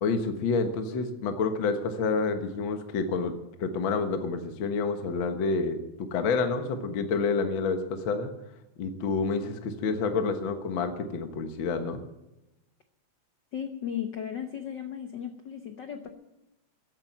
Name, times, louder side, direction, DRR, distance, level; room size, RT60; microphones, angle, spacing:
voice 1, 0.0-3.3 3.6-8.3 8.8-12.0, left 4 dB, 50° left, 7 dB, 1.7 m, -28 dB
voice 2, 13.5-16.1, left 9 dB, 70° left, 7 dB, 1.0 m, -35 dB
14.5 x 10.5 x 9.1 m, 0.96 s
omnidirectional pair, 3.4 m